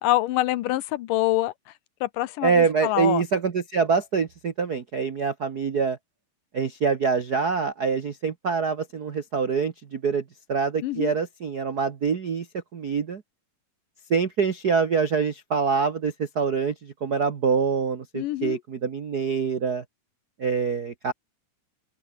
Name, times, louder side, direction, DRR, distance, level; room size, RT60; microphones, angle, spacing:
voice 1, 0.0-1.5 2.0-3.2 10.8-11.1 18.1-18.6, left 16 dB, 85° left, 2.5 m, -25 dB
voice 2, 2.4-6.0 6.5-10.2 10.5-12.5 12.7-13.2 14.1-19.8 20.4-21.1, right 5 dB, 60° right, 0.9 m, -25 dB
open air
omnidirectional pair, 3.7 m